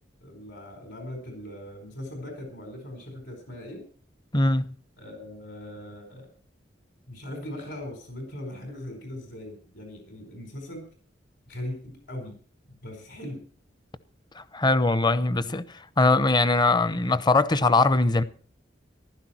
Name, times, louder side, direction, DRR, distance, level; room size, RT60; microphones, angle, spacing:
voice 1, 0.2-3.8 5.0-6.3 7.1-10.9 11.5-12.4 12.7-13.4, left 1 dB, 70° left, 4.6 m, -39 dB
voice 2, 4.3-4.7 14.4-15.6 16.0-18.2, left 3 dB, 25° left, 0.8 m, -21 dB
15.0 x 12.5 x 4.4 m
head